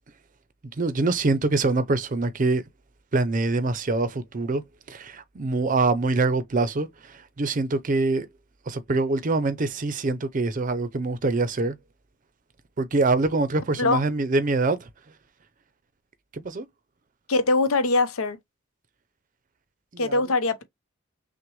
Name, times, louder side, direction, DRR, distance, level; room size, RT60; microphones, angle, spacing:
voice 1, 0.8-2.6 3.1-4.6 4.9-8.3 8.7-11.8 12.8-14.9 16.3-16.7 19.9-20.2, right 3 dB, 40° right, 0.5 m, -24 dB
voice 2, 17.3-18.4 20.0-20.6, left 3 dB, 85° left, 0.7 m, -22 dB
5.9 x 2.2 x 3.0 m
head